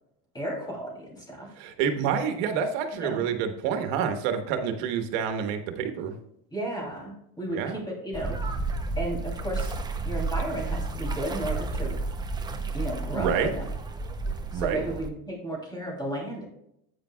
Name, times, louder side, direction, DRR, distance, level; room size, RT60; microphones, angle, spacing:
voice 1, 0.3-1.5 3.0-3.3 6.5-8.4 9.0-9.7 10.0-12.0 12.5-13.7 14.5-16.5, right 1 dB, 10° left, -1 dB, 2.9 m, -34 dB
voice 2, 1.6-6.1 7.5-7.8 13.1-13.5 14.5-14.8, right 7 dB, 75° right, 6 dB, 1.5 m, -28 dB
sound 1, 8.1-15.1, right 3 dB, 10° right, 0.6 m, -31 dB
9.8 x 9.0 x 2.3 m, 0.77 s
cardioid pair, 150°, 38 cm